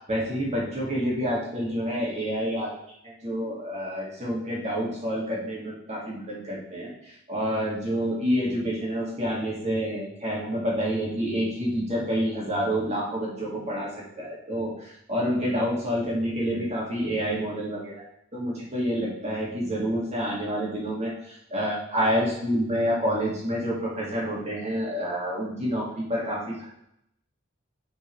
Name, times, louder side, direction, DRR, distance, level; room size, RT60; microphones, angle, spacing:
voice 1, 0.1-2.7 3.0-13.9 14.2-17.9 18.3-21.1 21.5-26.7, equal, 35° right, -5 dB, 2.2 m, -28 dB
9.1 x 4.5 x 3.3 m, 0.75 s
head